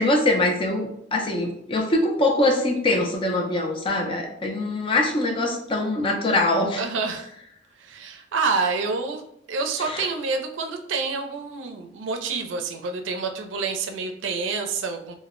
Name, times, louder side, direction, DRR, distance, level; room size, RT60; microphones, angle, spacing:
voice 1, 0.0-6.8 9.8-10.0, left 2 dB, 30° left, 2 dB, 0.4 m, -23 dB
voice 2, 6.8-7.3 7.8-9.2 9.5-15.1, right 4 dB, 90° right, 5 dB, 0.4 m, -28 dB
2.1 x 2.0 x 3.5 m, 0.72 s
head